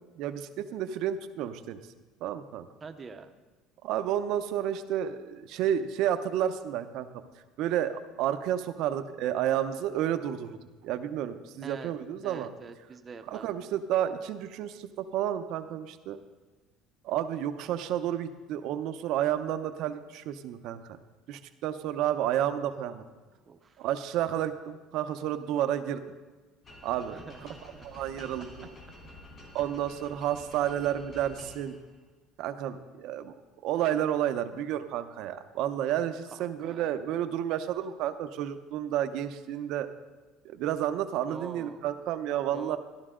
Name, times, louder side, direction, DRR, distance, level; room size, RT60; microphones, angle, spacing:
voice 1, 0.2-1.8 2.2-2.7 3.8-7.2 7.6-10.6 10.8-12.5 13.3-16.2 17.0-21.0 21.3-23.0 23.8-26.0 26.8-27.5 27.8-28.7 29.5-31.7 32.4-33.3 33.6-39.9 40.4-42.8, right 11 dB, 65° right, 9 dB, 0.7 m, -31 dB
voice 2, 2.8-3.3 11.6-11.9 12.2-13.5 23.2-23.9 27.1-27.9 29.6-29.7 36.3-36.8 41.3-41.8 42.5-42.8, right 5 dB, 25° right, 7 dB, 0.7 m, -45 dB
sound 1, 26.6-32.0, left 1 dB, 40° left, 3.0 m, -49 dB
13.5 x 11.5 x 3.7 m, 1.3 s
cardioid pair, 145°, 0 cm